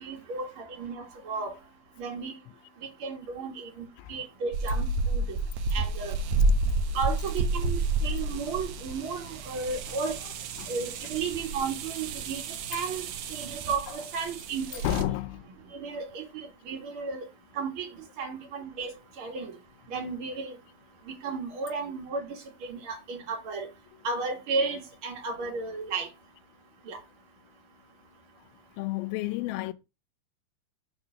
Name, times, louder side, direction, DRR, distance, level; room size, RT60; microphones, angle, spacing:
voice 1, 0.0-0.5 0.8-1.5 2.0-2.3 3.0-3.7 4.1-4.9 5.1-5.2 5.7-6.1 6.9-10.1 10.7-12.4 12.7-13.0 13.3-15.0 15.8-16.2 16.7-17.2 17.6-17.9 18.2-18.9 19.2-19.5 19.9-20.5 21.2-22.3 22.7-23.7 24.0-26.1 26.9-27.0, right 4 dB, 45° right, 1.9 m, -33 dB
sound 1, 4.5-15.0, right 2 dB, 85° right, 1.5 m, -30 dB
voice 2, 14.8-15.5 28.8-29.7, left 15 dB, 85° left, 2.4 m, -31 dB
6.6 x 3.9 x 5.8 m
omnidirectional pair, 4.3 m